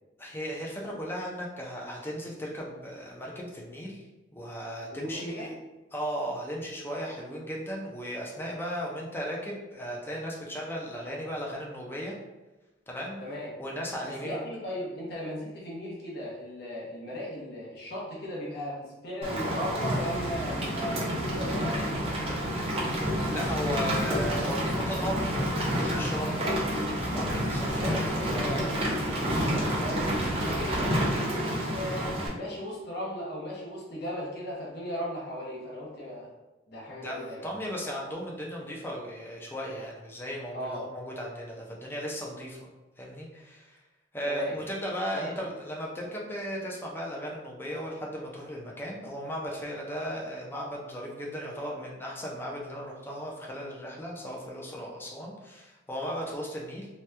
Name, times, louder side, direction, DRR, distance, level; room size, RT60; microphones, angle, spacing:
voice 1, 0.2-4.0 4.3-5.5 5.9-12.1 12.9-13.2 13.6-14.5 23.3-25.4 25.7-26.4 27.1-27.9 36.9-42.7 43.0-43.8 44.1-56.9, equal, 10° left, -2 dB, 0.5 m, -36 dB
voice 2, 4.9-5.5 13.2-13.5 14.0-22.4 26.4-26.7 27.7-36.3 36.7-37.5 40.5-40.8 44.2-44.6 45.1-45.4, equal, 55° left, -5 dB, 0.8 m, -37 dB
Rain, 19.2-32.3, equal, 30° right, 0.6 m, -29 dB
2.8 x 2.3 x 3.2 m, 1.1 s
head